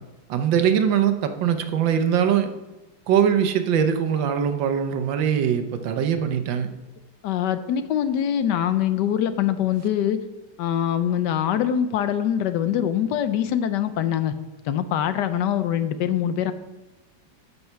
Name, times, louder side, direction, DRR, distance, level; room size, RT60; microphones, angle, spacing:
voice 1, 0.3-2.5 3.1-6.7, right 8 dB, 90° right, 8 dB, 1.6 m, -22 dB
voice 2, 7.2-10.2 10.6-14.3 14.7-16.5, left 10 dB, 75° left, 11 dB, 1.2 m, -23 dB
12.5 x 5.6 x 5.7 m, 1.1 s
omnidirectional pair, 2.0 m